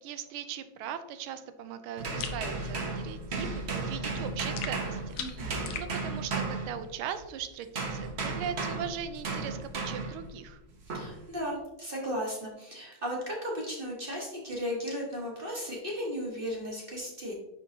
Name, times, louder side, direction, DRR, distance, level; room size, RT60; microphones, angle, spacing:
voice 1, 0.0-5.1 5.4-10.6, right 8 dB, 80° right, 10 dB, 1.4 m, -39 dB
sound 1, 2.0-7.3 7.7-10.3 10.9-11.2, right 3 dB, 50° right, 0.8 m, -34 dB
sound 2, 2.2-2.4 4.6-5.9, left 7 dB, 80° left, 1.5 m, -39 dB
voice 2, 5.2-5.6 10.9-17.3, equal, 30° right, -3 dB, 1.2 m, -35 dB
10.0 x 3.8 x 2.8 m, 0.95 s
omnidirectional pair, 2.3 m